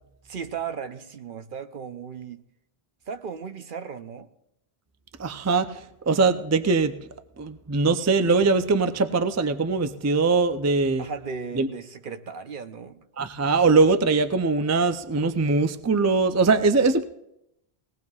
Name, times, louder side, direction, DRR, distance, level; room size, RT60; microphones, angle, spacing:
voice 1, 0.2-2.4 3.1-4.3 11.0-13.1, right 6 dB, 55° right, 8 dB, 0.9 m, -36 dB
voice 2, 5.2-7.0 7.4-11.1 11.6-11.7 13.2-17.0, right 4 dB, 25° right, 9 dB, 0.4 m, -22 dB
20.5 x 18.0 x 2.4 m, 0.83 s
omnidirectional pair, 1.1 m